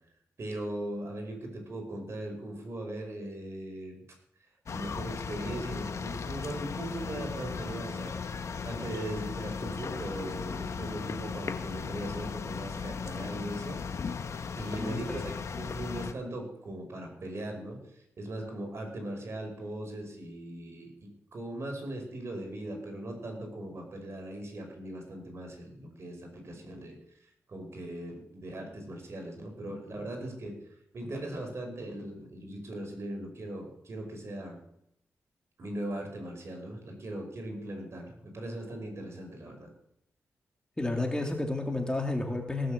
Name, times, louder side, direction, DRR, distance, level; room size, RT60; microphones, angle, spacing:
voice 1, 0.4-4.0 4.7-8.2 8.6-13.8 14.6-17.8 18.2-27.0 27.5-30.6 30.9-34.6 35.6-39.7, right 1 dB, 55° right, 2 dB, 5.0 m, -39 dB
sound 1, 4.7-16.1, left 5 dB, 60° left, 1.1 m, -37 dB
voice 2, 14.8-15.3 40.8-42.7, left 2 dB, 15° left, 2 dB, 2.4 m, -31 dB
18.0 x 6.8 x 7.7 m, 0.76 s
cardioid pair, 80°, 6 cm